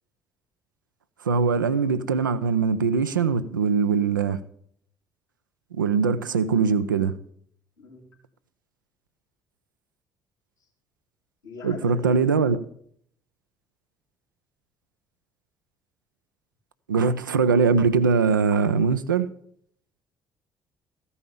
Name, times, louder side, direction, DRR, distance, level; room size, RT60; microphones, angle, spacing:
voice 1, 1.2-4.4 5.7-7.1 11.6-12.6 16.9-19.3, right 5 dB, 85° right, 0.4 m, -22 dB
voice 2, 7.8-8.1 11.4-12.2, left 4 dB, 80° left, 2.8 m, -41 dB
14.0 x 5.5 x 6.9 m
figure-of-eight pair, 45°, 10 cm